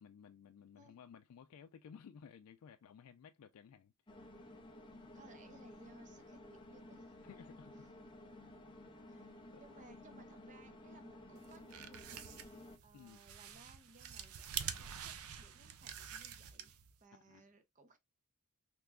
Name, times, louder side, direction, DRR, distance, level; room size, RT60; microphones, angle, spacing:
voice 1, 0.0-3.9 7.2-7.9 9.5-9.6 12.9-13.2 17.3-17.4, left 7 dB, 85° left, 0.3 m, -57 dB
sound 1, 4.1-12.8, left 1 dB, 20° left, 0.5 m, -55 dB
voice 2, 5.1-7.1 9.1-12.5 12.8-16.7 17.0-18.0, right 2 dB, 35° right, 0.6 m, -62 dB
sound 2, 11.4-17.0, right 9 dB, 75° right, 0.4 m, -46 dB
3.5 x 3.0 x 2.2 m
head